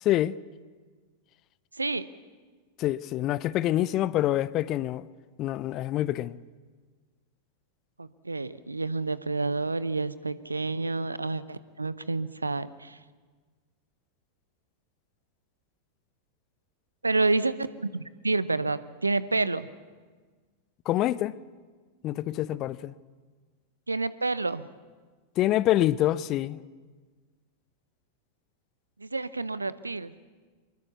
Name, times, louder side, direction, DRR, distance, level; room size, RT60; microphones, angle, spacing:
voice 1, 0.0-0.3 2.8-5.0 5.4-6.4 20.9-21.4 22.0-22.9 25.4-26.6, left 14 dB, 35° left, 0.6 m, -26 dB
voice 2, 1.7-2.1 8.0-13.0 17.0-19.7 23.9-24.7 29.0-30.1, right 3 dB, 80° right, 0.8 m, -29 dB
24.5 x 21.5 x 7.0 m
figure-of-eight pair, 90°, 0 cm